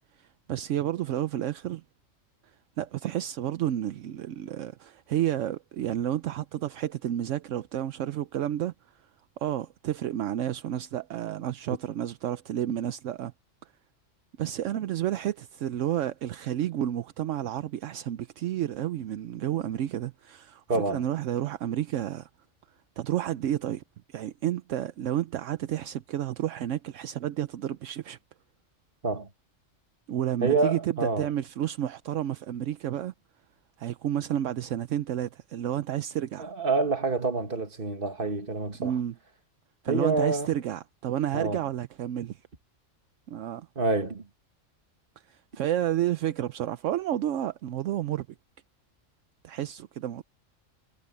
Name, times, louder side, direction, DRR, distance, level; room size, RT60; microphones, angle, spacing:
voice 1, 0.2-1.8 2.8-8.7 9.4-13.3 14.4-22.3 23.0-23.8 24.1-28.2 30.1-33.1 33.8-36.5 38.8-39.1 39.8-42.4 43.3-43.7 45.3-48.3 49.4-50.2, right 11 dB, 75° right, 1.0 m, -31 dB
voice 2, 20.7-21.0 29.0-29.3 30.4-31.3 36.4-39.0 39.9-40.5 41.3-41.6 43.8-44.2, right 3 dB, 45° right, 1.9 m, -27 dB
omnidirectional pair, 1.3 m